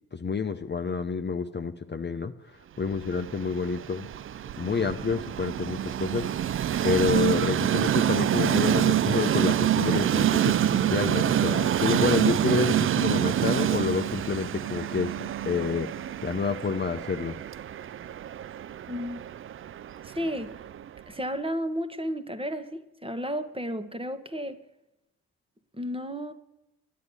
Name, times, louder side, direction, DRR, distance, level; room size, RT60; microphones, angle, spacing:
voice 1, 0.1-2.3 2.8-4.1 4.6-6.3 6.8-15.1 15.5-15.9 16.2-17.4, left 5 dB, 25° left, 0.8 m, -28 dB
Train, 2.9-21.0, right 11 dB, 30° right, 0.4 m, -27 dB
voice 2, 18.9-19.3 20.0-20.5 21.1-24.6 25.7-26.3, equal, 15° right, 1.3 m, -33 dB
9.7 x 9.4 x 9.5 m
hypercardioid pair, 40°, 42 cm